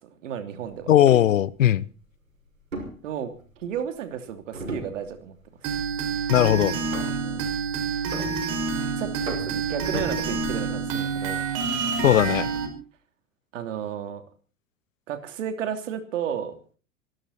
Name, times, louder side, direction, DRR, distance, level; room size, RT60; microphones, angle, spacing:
voice 1, 0.0-0.9 3.0-5.3 7.2-7.5 9.0-11.4 13.5-14.2 15.1-16.8, right 8 dB, 70° right, 3.1 m, -33 dB
voice 2, 0.9-1.9 6.3-6.8 12.0-12.5, left 11 dB, 75° left, 1.0 m, -18 dB
sound 1, 0.9-1.4 2.7-3.8 4.5-5.4 5.7-6.1 6.9-7.4 8.1-8.8 9.3-10.7, right 2 dB, 90° right, 5.8 m, -36 dB
sound 2, 5.6-12.7, right 5 dB, 50° right, 5.6 m, -28 dB
25.5 x 13.0 x 4.3 m
figure-of-eight pair, 85°, 39 cm